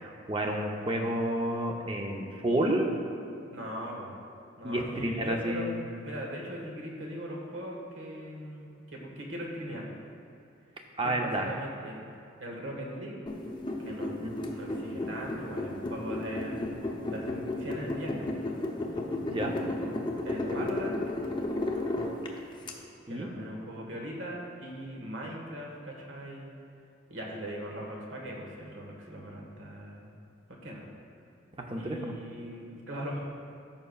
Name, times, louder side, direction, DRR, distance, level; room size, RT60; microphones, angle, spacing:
voice 1, 0.0-2.9 4.6-5.8 11.0-11.5 14.2-14.3 19.3-19.6 20.5-20.7 23.1-23.3 31.7-32.1, right 1 dB, 25° right, 1 dB, 0.7 m, -30 dB
voice 2, 3.5-4.2 4.6-5.7 6.0-9.9 11.0-12.0 12.4-13.2 13.8-14.1 14.5-16.8 17.1-18.3 20.2-21.0 23.1-26.5 27.1-30.1 30.5-30.8 31.8-33.3, equal, 80° right, -1 dB, 1.5 m, -40 dB
sound 1, 13.3-22.7, left 2 dB, 25° left, 0.6 m, -33 dB
14.5 x 5.6 x 2.4 m, 2.7 s
head